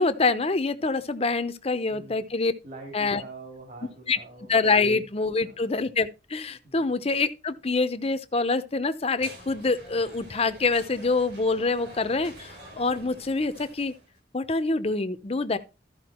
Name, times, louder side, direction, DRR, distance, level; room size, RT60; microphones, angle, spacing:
voice 1, 0.0-2.5 2.9-3.2 4.1-4.2 4.5-13.9 14.3-15.6, left 3 dB, 35° left, 0.8 m, -25 dB
voice 2, 1.9-2.3 2.6-4.5 4.8-5.1 5.4-5.8 6.6-7.0, right 3 dB, 45° right, 2.5 m, -45 dB
sound 1, 9.2-14.2, right 1 dB, 65° right, 4.2 m, -47 dB
13.5 x 5.0 x 4.4 m
head